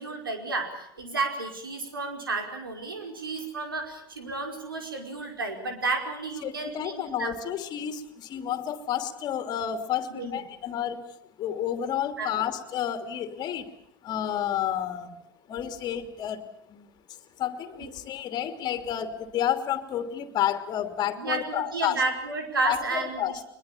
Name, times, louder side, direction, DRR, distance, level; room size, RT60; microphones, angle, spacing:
voice 1, 0.0-7.3 10.1-10.4 12.2-12.4 17.8-17.9 21.2-23.4, right 3 dB, 85° right, 4 dB, 5.2 m, -32 dB
voice 2, 6.4-11.0 11.4-13.7 14.0-15.1 15.5-16.9 17.4-22.0 22.6-23.4, left 10 dB, 35° left, 9 dB, 2.9 m, -30 dB
23.0 x 22.0 x 8.8 m, 0.70 s
figure-of-eight pair, 90°, 11 cm